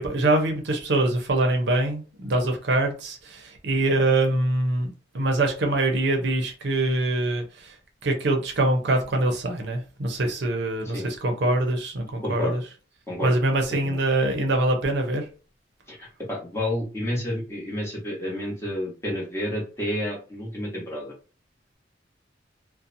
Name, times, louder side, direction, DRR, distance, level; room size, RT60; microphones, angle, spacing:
voice 1, 0.0-7.8 8.0-12.6 13.2-15.3, right 2 dB, 65° right, 0.6 m, -24 dB
voice 2, 12.2-12.6 13.1-13.3 13.7-14.0 15.9-21.1, left 1 dB, 15° left, 0.9 m, -30 dB
2.7 x 2.1 x 2.5 m
head